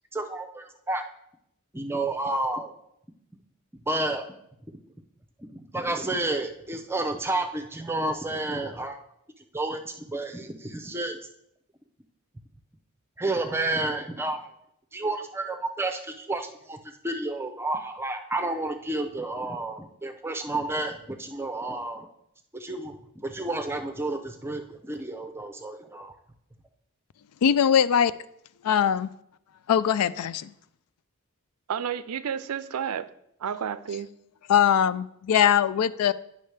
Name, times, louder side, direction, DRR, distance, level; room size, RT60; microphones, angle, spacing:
voice 1, 0.1-1.0 1.7-2.7 3.9-4.3 5.4-9.0 9.5-11.2 13.2-14.5 14.9-16.8 17.0-22.1 22.5-23.0 23.2-26.1, right 2 dB, 10° right, 6 dB, 0.6 m, -30 dB
voice 2, 27.4-28.1 28.6-29.1 29.7-30.5 34.5-36.1, left 8 dB, 85° left, 16 dB, 0.3 m, -21 dB
voice 3, 31.7-33.1 33.4-34.1, right 8 dB, 80° right, 14 dB, 0.4 m, -31 dB
10.5 x 5.5 x 3.3 m, 0.76 s
head